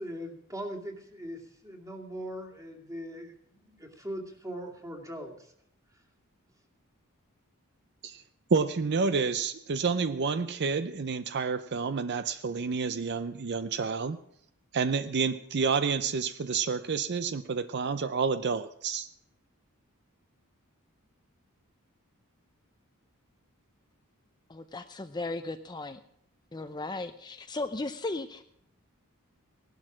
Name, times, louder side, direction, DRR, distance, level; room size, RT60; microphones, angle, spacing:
voice 1, 0.0-5.5, equal, 15° right, 2.5 m, -40 dB
voice 2, 8.5-14.2 14.7-19.1, right 5 dB, 50° right, 0.6 m, -29 dB
voice 3, 24.5-26.0 26.5-28.4, left 2 dB, 20° left, 0.6 m, -36 dB
17.5 x 12.0 x 6.2 m
head